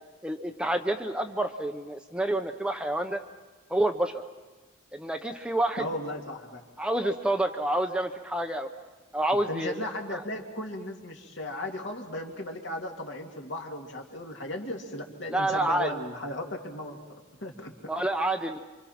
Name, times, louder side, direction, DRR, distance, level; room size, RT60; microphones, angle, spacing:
voice 1, 0.2-3.2 3.7-4.1 4.9-5.9 6.8-8.7 9.1-9.9 10.1-10.2 15.3-15.9 17.9-18.6, right 1 dB, 5° right, 5 dB, 0.7 m, -28 dB
voice 2, 5.8-6.6 9.5-17.0 17.4-17.9, left 1 dB, 60° left, 1 dB, 2.5 m, -36 dB
27.5 x 26.0 x 5.8 m, 1.2 s
head